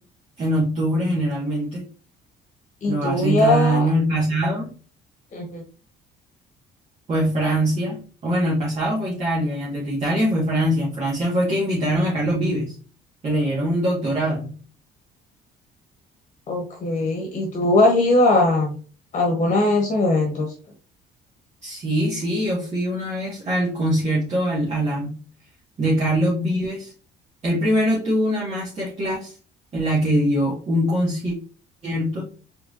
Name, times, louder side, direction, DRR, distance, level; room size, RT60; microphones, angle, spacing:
voice 1, 0.4-1.8 2.9-4.7 7.1-12.7 13.2-14.5 21.6-25.2 25.8-26.9 27.4-29.3 29.7-31.3 31.8-32.3, right 1 dB, 40° right, -6 dB, 1.8 m, -23 dB
voice 2, 2.8-3.9 5.3-5.6 16.5-18.8 19.1-20.5, left 2 dB, 45° left, 1 dB, 1.2 m, -20 dB
4.4 x 3.5 x 2.7 m, 0.39 s
cardioid pair, 110°, 17 cm